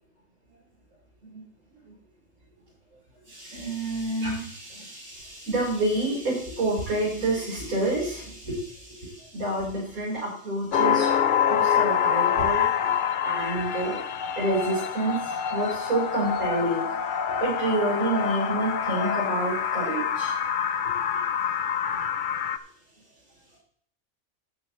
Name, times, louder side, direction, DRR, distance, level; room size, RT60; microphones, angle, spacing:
voice 1, 3.3-11.1 11.5-12.9 13.2-14.0 14.4-16.9 17.4-20.3, right 2 dB, 70° right, -7 dB, 5.1 m, -28 dB
sound 1, 10.7-22.6, left 8 dB, 60° left, 0.5 m, -26 dB
13.0 x 9.1 x 3.1 m, 0.62 s
omnidirectional pair, 1.5 m